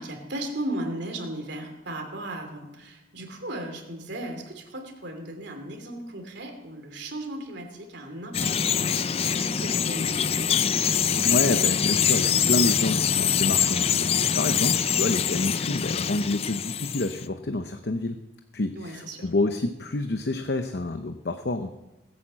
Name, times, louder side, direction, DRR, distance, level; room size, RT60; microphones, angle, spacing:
voice 1, 0.0-10.5 18.7-19.3, right 1 dB, 65° right, 3 dB, 3.0 m, -36 dB
Bird vocalization bird call bird song, 8.3-17.2, left 8 dB, 30° left, 0.4 m, -24 dB
voice 2, 11.2-18.2 18.5-21.7, left 2 dB, 60° left, 8 dB, 0.7 m, -28 dB
19.0 x 8.6 x 7.5 m, 1.0 s
head